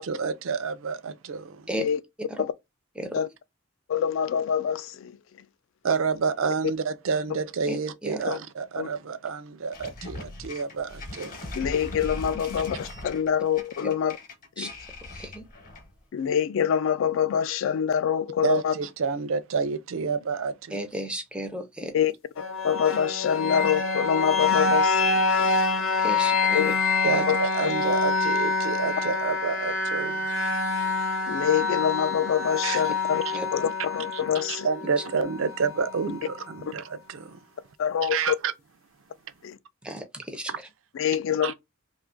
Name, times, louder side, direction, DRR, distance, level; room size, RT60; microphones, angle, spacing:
voice 1, 0.0-1.7 5.8-11.4 18.4-20.8 27.0-30.2 32.6-32.8 33.3-33.4 34.1-37.4 38.0-38.3 41.4-41.5, right 5 dB, 75° right, 0.4 m, -29 dB
voice 2, 3.9-5.2 8.3-8.4 8.8-8.9 11.5-14.2 14.6-14.7 16.1-18.7 21.9-22.1 22.6-25.5 26.5-26.7 27.3-27.4 31.3-33.2 33.5-34.7 37.8-38.4 39.4-39.6 40.9-41.5, left 8 dB, 70° left, 0.3 m, -25 dB
voice 3, 7.7-8.2 13.8-13.9 14.6-14.7 15.1-15.5 20.7-21.9 26.0-26.6 27.1-27.2 33.3-33.5 39.8-40.5, right 1 dB, 5° right, 0.4 m, -34 dB
sound 1, 9.7-16.0, left 2 dB, 45° left, 0.9 m, -39 dB
sound 2, 22.4-36.3, left 3 dB, 85° left, 0.7 m, -26 dB
2.7 x 2.4 x 3.6 m
head